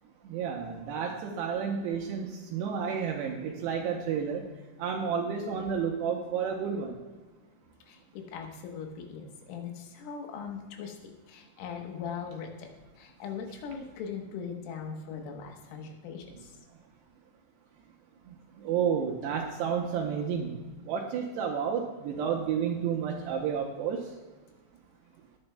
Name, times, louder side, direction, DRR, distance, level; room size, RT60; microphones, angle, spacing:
voice 1, 0.3-4.4 4.8-7.0 18.6-24.0, right 7 dB, 80° right, 1 dB, 2.5 m, -31 dB
voice 2, 7.9-11.0 11.3-12.7 13.0-16.5, left 6 dB, 85° left, 2 dB, 3.8 m, -40 dB
17.5 x 9.7 x 2.3 m, 1.2 s
omnidirectional pair, 5.7 m